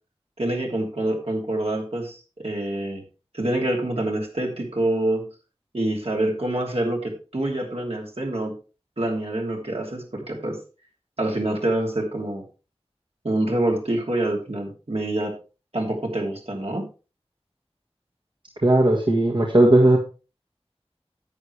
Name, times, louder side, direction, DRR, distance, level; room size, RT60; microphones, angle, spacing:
voice 1, 0.4-3.0 3.3-5.3 5.7-8.5 9.0-10.6 11.2-12.4 13.2-15.4 15.7-16.9, right 1 dB, 65° right, -1 dB, 3.0 m, -26 dB
voice 2, 18.6-20.0, right 1 dB, 45° right, -1 dB, 1.7 m, -17 dB
11.0 x 8.2 x 3.3 m, 0.32 s
wide cardioid pair, 40°, 11 cm